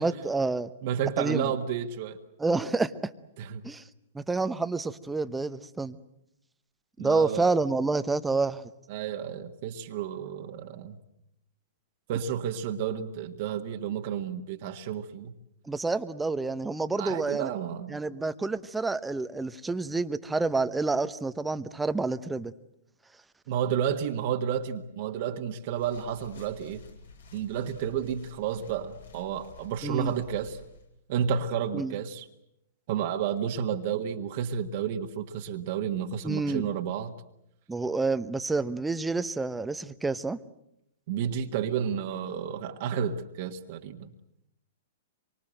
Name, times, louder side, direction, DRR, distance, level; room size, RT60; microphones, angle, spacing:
voice 1, 0.0-0.7 1.2-1.5 2.4-3.1 3.6-3.8 4.1-6.0 7.0-8.7 15.7-17.5 17.9-22.5 29.8-30.1 31.7-32.0 36.2-36.7 37.7-40.4, right 3 dB, 10° right, 13 dB, 1.0 m, -28 dB
voice 2, 0.8-2.2 3.4-3.6 7.0-7.5 8.9-11.0 12.1-15.3 17.0-18.0 23.5-26.8 27.3-30.6 31.1-32.2 32.9-37.1 41.1-44.1, right 8 dB, 50° right, 4 dB, 1.6 m, -31 dB
sound 1, 25.7-30.9, left 4 dB, 70° left, 7.7 m, -51 dB
26.0 x 24.5 x 7.8 m, 0.80 s
figure-of-eight pair, 110°, 0 cm